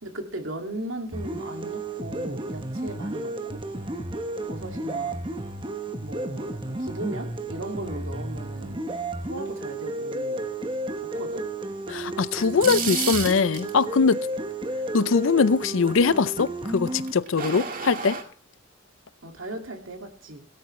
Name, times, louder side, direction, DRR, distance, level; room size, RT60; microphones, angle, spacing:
voice 1, 0.0-3.6 4.4-5.2 6.0-8.9 9.3-11.5 19.2-20.5, right 1 dB, 75° right, 2.3 m, -37 dB
sound 1, 1.1-17.1, right 1 dB, 25° right, 1.0 m, -32 dB
voice 2, 11.9-14.2 14.9-18.2, left 5 dB, 70° left, 0.6 m, -22 dB
sound 2, 12.3-13.8 17.1-18.2, right 6 dB, 45° right, 1.8 m, -30 dB
17.0 x 13.0 x 3.2 m
head